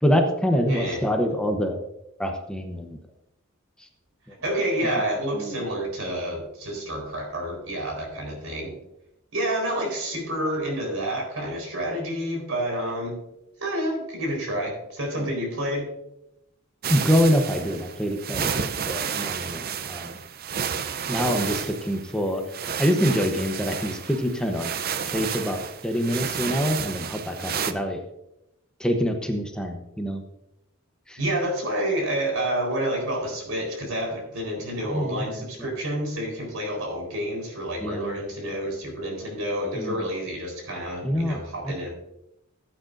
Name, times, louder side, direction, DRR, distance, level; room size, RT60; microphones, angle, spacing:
voice 1, 0.0-1.8 2.2-3.0 5.3-5.6 16.9-20.2 21.1-22.4 22.8-24.7 25.0-28.0 28.8-30.2 31.1-31.2 34.9-35.7 37.8-38.2 39.7-40.0 41.0-41.7, equal, 5° left, 4 dB, 0.8 m, -25 dB
voice 2, 0.7-1.0 4.4-8.7 9.3-13.2 13.6-15.9 31.2-41.9, right 1 dB, 85° right, 1 dB, 4.1 m, -29 dB
sound 1, 16.8-27.7, right 7 dB, 45° right, 0.5 m, -31 dB
15.5 x 8.9 x 2.6 m, 0.84 s
head